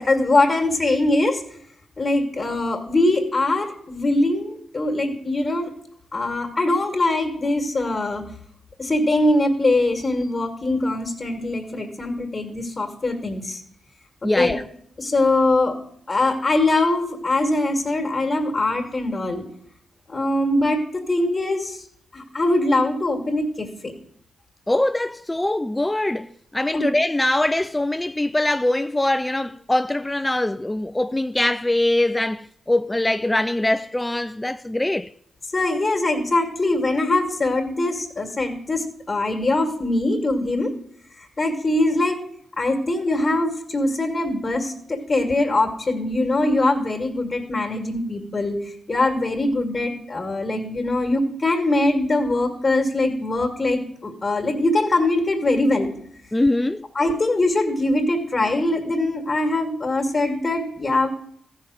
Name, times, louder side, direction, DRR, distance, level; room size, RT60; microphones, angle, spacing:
voice 1, 0.0-1.4 2.0-5.7 6.1-8.3 8.8-13.6 14.2-14.6 15.0-15.8 16.1-19.4 20.1-21.8 22.1-23.9 26.7-26.9 35.5-40.7 41.2-42.2 42.6-55.9 57.0-61.1, left 2 dB, 35° left, 1.9 m, -22 dB
voice 2, 14.2-14.6 24.7-35.1 56.3-56.9, left 1 dB, 15° left, 0.3 m, -22 dB
14.0 x 5.6 x 6.4 m
supercardioid pair, 55°, 0 cm